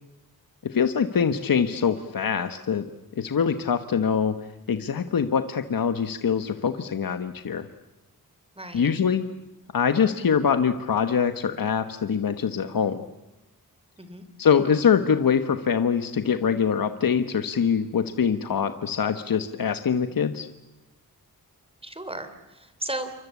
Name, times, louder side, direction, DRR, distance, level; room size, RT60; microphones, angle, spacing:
voice 1, 0.6-2.9 3.2-4.4 4.7-7.7 8.7-9.3 9.7-13.0 14.4-20.5, left 7 dB, 65° left, 9 dB, 1.4 m, -24 dB
voice 2, 8.6-8.9 14.0-14.3 21.8-23.2, right 1 dB, 15° right, 10 dB, 3.4 m, -35 dB
28.5 x 24.0 x 8.4 m, 0.97 s
wide cardioid pair, 140°, 37 cm